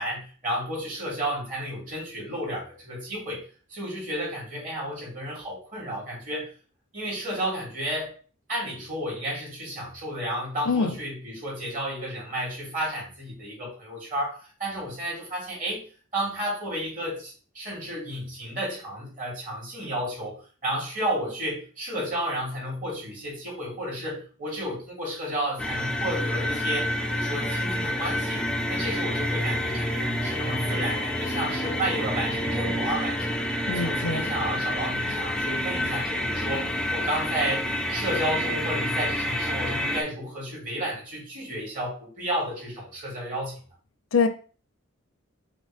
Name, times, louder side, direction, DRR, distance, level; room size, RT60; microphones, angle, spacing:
voice 1, 0.0-6.5 6.9-8.2 8.5-15.9 16.1-33.4 33.7-43.6, right 1 dB, 40° right, -4 dB, 2.5 m, -32 dB
voice 2, 10.7-11.0 33.7-34.2 44.1-44.3, left 4 dB, 75° left, 9 dB, 0.5 m, -24 dB
sound 1, 25.6-40.0, equal, 5° left, 0.4 m, -28 dB
5.7 x 2.6 x 3.4 m, 0.38 s
head